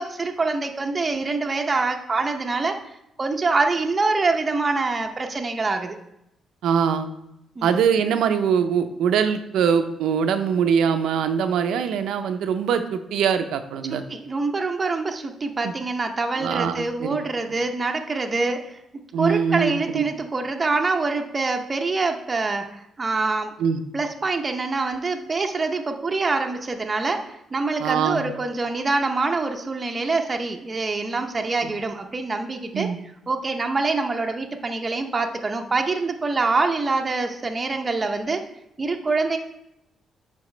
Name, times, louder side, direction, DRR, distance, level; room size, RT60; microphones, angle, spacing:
voice 1, 0.0-6.0 7.6-7.8 13.9-18.8 19.2-23.5 23.9-32.9 33.3-38.4 38.8-39.4, right 3 dB, 25° right, 3 dB, 0.6 m, -25 dB
voice 2, 6.6-7.1 7.6-14.0 15.6-15.7 16.4-17.2 19.1-20.0 23.6-23.8 27.8-28.2 31.6-31.7 32.7-33.0, right 7 dB, 90° right, 8 dB, 0.6 m, -22 dB
10.5 x 4.1 x 3.2 m, 0.83 s
cardioid pair, 125°, 0 cm